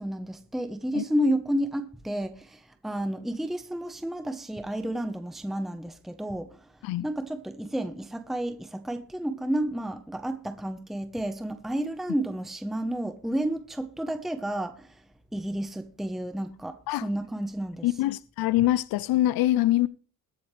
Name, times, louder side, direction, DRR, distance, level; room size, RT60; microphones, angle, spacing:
voice 1, 0.0-6.7 7.0-15.0 15.3-17.9, right 1 dB, ahead, 0.9 m, -31 dB
voice 2, 17.8-19.9, left 15 dB, 80° left, 0.5 m, -24 dB
21.5 x 7.9 x 3.2 m
cardioid pair, 115°, 35 cm